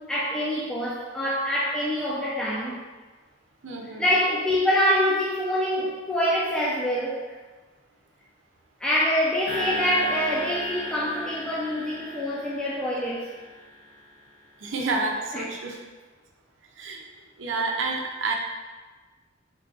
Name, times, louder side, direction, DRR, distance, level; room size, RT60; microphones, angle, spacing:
voice 1, 0.0-2.8 4.0-7.2 8.8-13.3 15.3-15.5, equal, 5° left, -7 dB, 0.4 m, -25 dB
voice 2, 3.6-4.1 14.6-15.8 16.8-17.0 17.4-18.3, right 3 dB, 85° right, 0 dB, 0.6 m, -29 dB
sound 1, 9.5-13.9, left 1 dB, 60° left, 1.2 m, -35 dB
3.2 x 2.5 x 3.7 m, 1.3 s
head